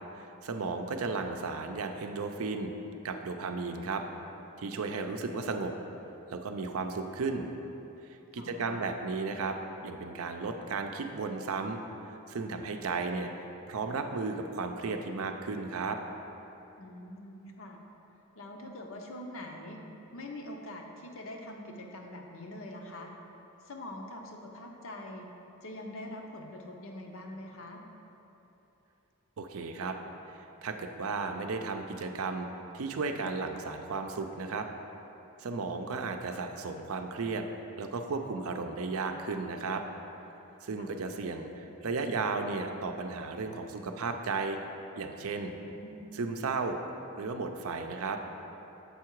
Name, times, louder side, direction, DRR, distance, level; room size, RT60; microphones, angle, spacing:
voice 1, 0.1-2.7 3.0-4.0 4.6-5.7 6.3-7.5 8.3-9.5 9.8-13.3 13.7-16.0 29.4-30.0 30.3-32.5 32.7-34.7 35.4-37.4 37.8-39.8 40.6-44.6 45.0-45.5 46.1-46.8 47.2-48.2, right 4 dB, 70° right, 5 dB, 0.5 m, -34 dB
voice 2, 8.4-8.9 16.8-17.8 18.4-19.8 20.1-23.1 23.6-25.3 25.6-27.8 40.8-41.0 45.6-46.1, left 1 dB, 65° left, 2 dB, 0.7 m, -44 dB
7.0 x 4.7 x 4.5 m, 3.0 s
head